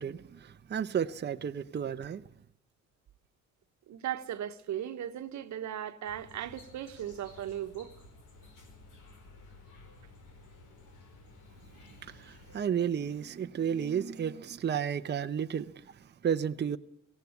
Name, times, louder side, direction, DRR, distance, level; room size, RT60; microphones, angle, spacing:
voice 1, 0.0-2.2 12.0-16.8, right 8 dB, 35° right, 0.7 m, -32 dB
voice 2, 3.9-7.9, right 10 dB, 70° right, 1.2 m, -37 dB
sound 1, 6.0-12.6, left 2 dB, 85° left, 5.1 m, -54 dB
18.0 x 15.5 x 9.6 m
cardioid pair, 90°, 30 cm